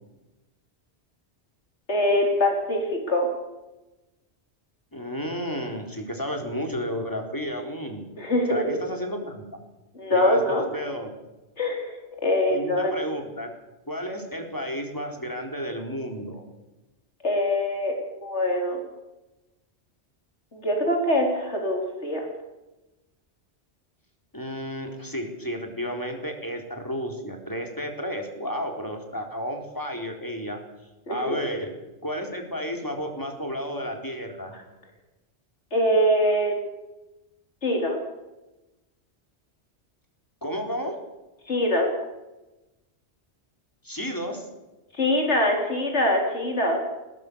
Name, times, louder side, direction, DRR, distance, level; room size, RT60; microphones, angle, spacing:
voice 1, 1.9-3.3 8.2-8.8 9.9-10.7 11.6-11.9 12.2-12.9 17.2-17.9 18.2-18.8 20.5-22.3 31.1-31.4 35.7-36.5 37.6-38.0 41.5-41.9 45.0-46.9, left 1 dB, 80° left, 2 dB, 4.4 m, -23 dB
voice 2, 4.9-8.1 8.5-9.6 10.1-11.2 12.5-13.5 13.9-16.4 24.3-30.6 31.1-31.7 32.0-34.5 40.4-41.0 43.8-44.5, equal, 15° left, 3 dB, 4.0 m, -32 dB
20.5 x 19.0 x 6.9 m, 1.0 s
omnidirectional pair, 1.2 m